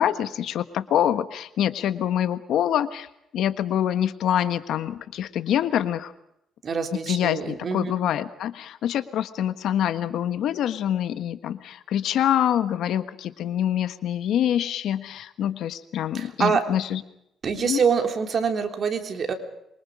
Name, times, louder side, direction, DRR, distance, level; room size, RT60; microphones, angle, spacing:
voice 1, 0.0-3.1 3.3-6.1 7.1-17.0 17.6-17.8, left 10 dB, 75° left, 11 dB, 1.4 m, -25 dB
voice 2, 6.6-7.9 16.1-16.6 17.4-19.3, right 6 dB, 45° right, 4 dB, 3.5 m, -25 dB
26.5 x 24.0 x 5.1 m, 0.80 s
cardioid pair, 115°, 0 cm